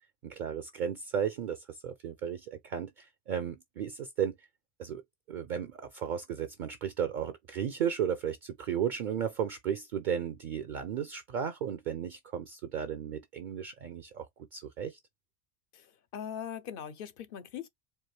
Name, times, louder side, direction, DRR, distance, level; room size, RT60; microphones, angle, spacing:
voice 1, 0.2-4.5 4.8-5.0 5.3-14.3 14.5-15.0, right 8 dB, 60° right, 0.6 m, -34 dB
voice 2, 15.7-17.7, left 9 dB, 65° left, 0.7 m, -41 dB
4.5 x 2.5 x 3.1 m
omnidirectional pair, 1.1 m